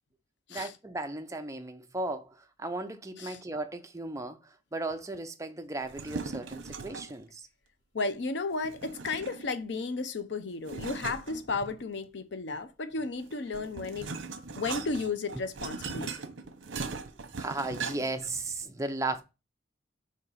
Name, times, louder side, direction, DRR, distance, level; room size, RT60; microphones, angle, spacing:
voice 1, 0.5-7.5 17.4-19.2, right 2 dB, 15° right, 0.6 m, -36 dB
sound 1, 5.8-7.2 8.6-9.6 10.7-12.0 13.2-18.3, right 4 dB, 65° right, 0.8 m, -39 dB
voice 2, 7.9-14.1 14.5-16.1, left 3 dB, 60° left, 0.6 m, -33 dB
5.0 x 4.0 x 5.5 m
head